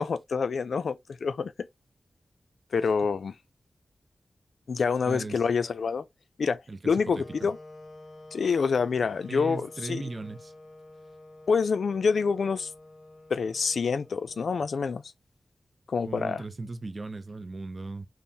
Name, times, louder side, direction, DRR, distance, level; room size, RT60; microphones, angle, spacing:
voice 1, 0.0-1.7 2.7-3.3 4.7-6.1 6.4-7.6 8.3-10.0 11.5-12.7 13.3-15.0 15.9-16.4, left 5 dB, 80° left, 0.3 m, -27 dB
voice 2, 5.1-5.4 6.7-7.5 9.3-10.5 16.0-18.1, right 3 dB, 35° right, 0.5 m, -37 dB
sound 1, 7.1-15.1, left 2 dB, 50° left, 0.8 m, -49 dB
5.4 x 2.0 x 2.7 m
wide cardioid pair, 110°, 0 cm